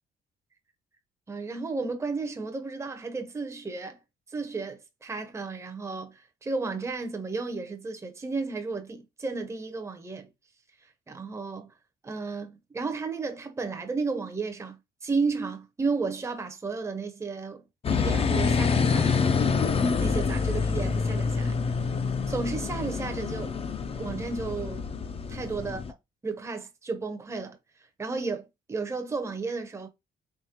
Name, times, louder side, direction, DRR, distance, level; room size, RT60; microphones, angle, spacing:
voice 1, 1.3-4.0 4.3-10.3 11.1-11.7 12.0-17.6 17.9-19.1 20.0-21.5 22.3-23.5 23.9-24.9 25.3-25.8 26.2-27.6 28.0-29.9, right 4 dB, 15° right, 0.6 m, -33 dB
sound 1, 17.8-25.9, left 5 dB, 30° left, 0.4 m, -27 dB
3.6 x 3.1 x 2.8 m
cardioid pair, 90°, 20 cm